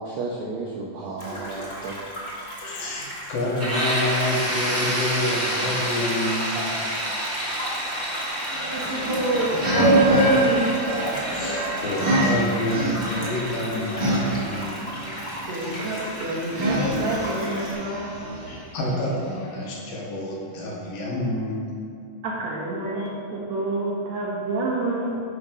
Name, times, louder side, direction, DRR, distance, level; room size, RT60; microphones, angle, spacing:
voice 1, 0.0-2.0, right 3 dB, 75° right, -2 dB, 1.6 m, -33 dB
sound 1, 1.2-17.7, equal, 30° left, 0.9 m, -36 dB
voice 2, 2.4-6.7 9.7-10.0 11.3-14.8 18.5-21.8, left 1 dB, 80° left, -3 dB, 3.1 m, -28 dB
sound 2, 3.6-19.2, equal, 10° right, 0.7 m, -31 dB
sound 3, 8.5-18.6, right 1 dB, 40° right, 2.7 m, -25 dB
voice 3, 8.6-10.8 12.2-12.3 15.5-18.3 22.2-25.1, right 2 dB, 60° right, -4 dB, 2.2 m, -28 dB
11.0 x 4.2 x 5.3 m, 2.5 s
omnidirectional pair, 4.0 m